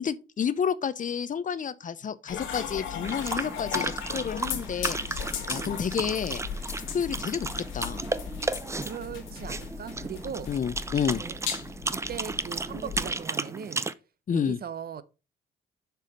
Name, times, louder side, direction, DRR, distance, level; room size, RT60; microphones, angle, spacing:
voice 1, 0.0-6.4 6.9-7.5 7.7-8.1 10.5-11.2 14.3-14.6, left 7 dB, 40° left, 0.7 m, -30 dB
sound 1, 2.3-13.2, left 7 dB, 85° left, 1.7 m, -37 dB
sound 2, 3.0-13.9, right 3 dB, 15° right, 0.5 m, -34 dB
voice 2, 5.5-5.8 8.7-10.5 11.2-11.4 11.9-13.9 14.3-15.0, right 8 dB, 50° right, 0.8 m, -39 dB
6.8 x 4.8 x 5.1 m
cardioid pair, 90°, 20 cm